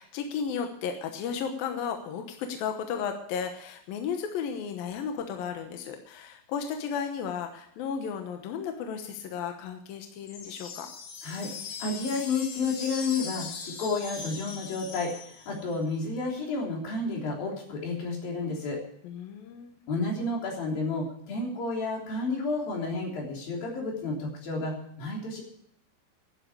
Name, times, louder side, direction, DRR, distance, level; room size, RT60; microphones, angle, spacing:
voice 1, 0.0-10.9 19.0-19.8, left 7 dB, 70° left, 5 dB, 2.3 m, -34 dB
sound 1, 10.3-15.8, left 5 dB, 90° left, 4.9 m, -40 dB
voice 2, 11.8-15.1 15.5-18.8 19.9-25.4, left 3 dB, 55° left, -1 dB, 5.0 m, -31 dB
11.0 x 10.5 x 8.1 m, 0.67 s
omnidirectional pair, 5.3 m